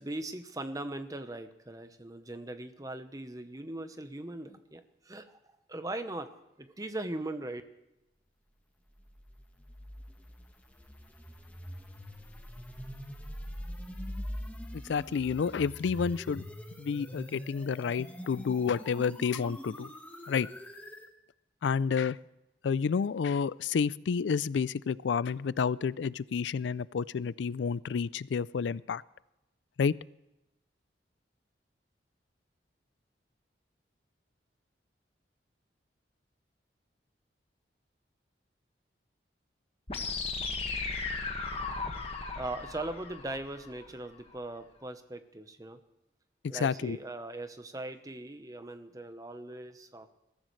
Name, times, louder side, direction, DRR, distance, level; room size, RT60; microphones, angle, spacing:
voice 1, 0.0-5.4 5.7-6.3 6.6-7.6 42.3-45.8 46.5-50.1, right 2 dB, 20° right, 9 dB, 0.9 m, -40 dB
sound 1, 9.0-21.1, equal, 10° left, 1.4 m, -43 dB
voice 2, 14.9-16.4 16.8-19.9 20.3-20.5 21.6-22.2 22.6-29.0 29.8-29.9 46.5-47.0, left 6 dB, 80° left, 20 dB, 0.4 m, -30 dB
sound 2, 39.9-43.9, left 4 dB, 35° left, 1.7 m, -36 dB
21.0 x 14.0 x 3.2 m, 0.93 s
head